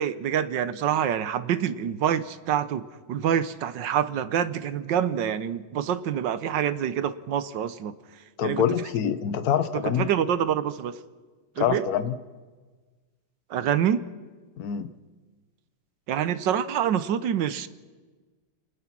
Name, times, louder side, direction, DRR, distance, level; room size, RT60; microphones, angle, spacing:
voice 1, 0.0-7.9 8.4-8.6 10.0-11.0 11.6-11.8 13.5-14.0 16.1-17.7, right 9 dB, 70° right, 14 dB, 1.4 m, -26 dB
voice 2, 8.4-10.1 11.6-12.2 14.6-14.9, left 9 dB, 55° left, 12 dB, 1.4 m, -25 dB
28.5 x 19.5 x 6.1 m, 1.4 s
omnidirectional pair, 2.1 m